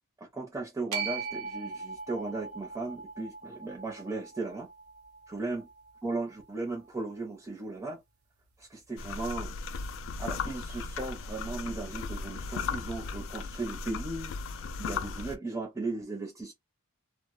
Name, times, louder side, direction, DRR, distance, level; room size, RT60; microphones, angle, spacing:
voice 1, 0.3-4.7 5.3-5.7 6.0-8.0 8.6-9.5 10.2-16.5, right 3 dB, 15° right, 0.6 m, -36 dB
sound 1, 0.9-7.1, right 5 dB, 75° right, 0.6 m, -41 dB
sound 2, 9.0-15.4, left 4 dB, 55° left, 0.3 m, -36 dB
2.0 x 2.0 x 3.0 m
head